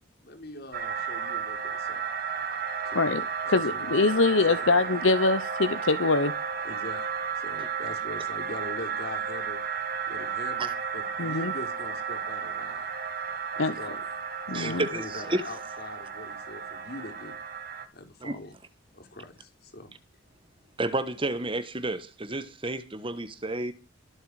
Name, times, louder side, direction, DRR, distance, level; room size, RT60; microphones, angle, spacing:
voice 1, 0.2-2.0 2.8-3.0 3.5-4.0 4.5-4.8 6.6-9.6 10.1-12.9 13.6-14.0 14.5-17.4 17.9-18.5 18.9-19.9, left 2 dB, 50° left, 4.2 m, -42 dB
sound 1, 0.7-17.9, right 6 dB, 45° right, 2.1 m, -33 dB
voice 2, 3.5-6.3 11.2-11.5 13.6-13.7 14.5-14.8, left 3 dB, 65° left, 0.9 m, -24 dB
voice 3, 14.5-15.4 18.2-18.4 20.8-23.7, right 2 dB, 25° right, 1.3 m, -31 dB
22.5 x 8.1 x 4.9 m
head